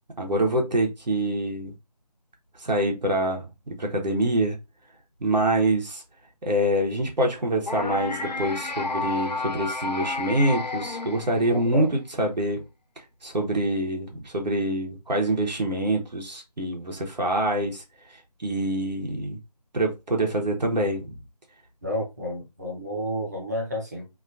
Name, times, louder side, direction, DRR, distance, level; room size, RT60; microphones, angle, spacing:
voice 1, 0.2-1.7 2.6-3.5 3.8-4.6 5.2-6.0 6.4-12.6 13.2-17.8 18.4-19.4 19.7-21.1, right 1 dB, 90° right, 1.1 m, -25 dB
sound 1, 7.6-11.8, left 3 dB, 80° left, 0.6 m, -31 dB
voice 2, 11.5-11.9 21.8-24.1, left 1 dB, 25° right, 0.7 m, -31 dB
2.9 x 2.4 x 2.6 m
figure-of-eight pair, 170°, 21 cm